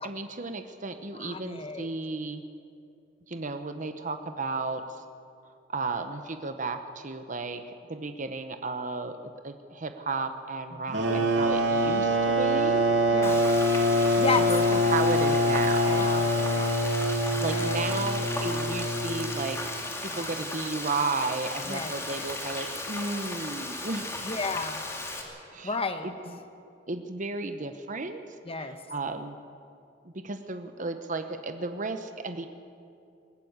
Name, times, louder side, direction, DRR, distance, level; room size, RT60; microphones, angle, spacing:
voice 1, 0.0-2.4 3.3-4.8 5.7-9.1 9.4-12.9 14.4-16.1 17.4-19.6 20.0-24.2 25.5-25.8 26.0-26.4 26.9-28.2 28.6-29.4 30.0-32.5, right 3 dB, 45° right, 8 dB, 1.0 m, -33 dB
voice 2, 1.1-1.9 10.7-11.0 11.8-12.0 13.1-13.4 14.2-15.1 15.8-16.7 17.3-18.1 20.0-20.3 21.6-21.9 24.2-24.8 25.6-26.1 28.4-28.8, left 3 dB, 30° left, 7 dB, 1.3 m, -33 dB
sound 1, 10.9-19.4, equal, 70° right, 2.9 m, -24 dB
Frying (food), 13.2-25.2, left 2 dB, 15° left, 2.5 m, -36 dB
21.0 x 17.0 x 8.1 m, 2.5 s
head